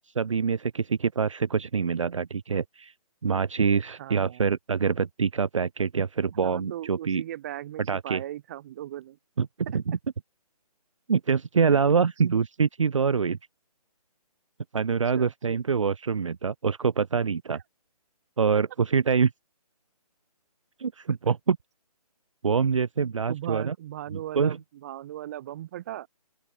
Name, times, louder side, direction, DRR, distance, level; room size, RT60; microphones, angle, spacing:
voice 1, 0.2-2.9 3.2-7.2 7.9-8.2 9.4-10.0 11.1-13.4 14.7-17.6 18.4-19.3 20.8-21.6 22.4-23.8 24.1-24.6, right 6 dB, 50° right, 0.7 m, -25 dB
voice 2, 3.9-4.5 6.3-9.2 9.9-10.0 11.6-11.8 12.2-12.3 15.1-15.3 21.2-21.3 23.3-26.1, right 13 dB, 25° right, 1.3 m, -38 dB
open air
figure-of-eight pair, 145°, 20 cm